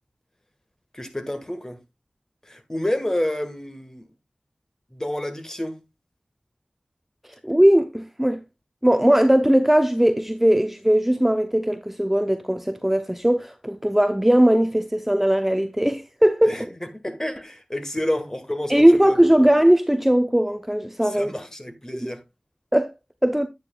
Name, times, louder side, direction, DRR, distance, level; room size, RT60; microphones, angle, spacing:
voice 1, 0.9-1.8 2.5-4.1 4.9-5.8 16.4-19.3 21.0-22.2, left 1 dB, 20° left, 1.7 m, -29 dB
voice 2, 7.4-8.4 8.8-16.6 18.7-21.3 22.0-22.1 22.7-22.9 23.2-23.5, right 1 dB, 5° right, 0.7 m, -19 dB
9.6 x 9.1 x 2.3 m
wide cardioid pair, 50°, 2 cm